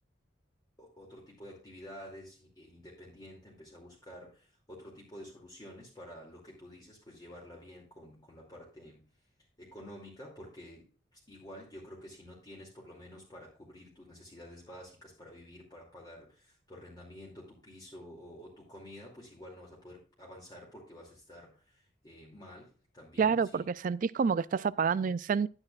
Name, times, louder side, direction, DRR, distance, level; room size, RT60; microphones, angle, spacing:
voice 1, 0.8-9.0 9.6-10.8 11.1-23.7, equal, 20° left, 2.7 m, -50 dB
voice 2, 23.2-25.5, right 6 dB, 45° right, 0.3 m, -28 dB
11.0 x 9.8 x 2.4 m
head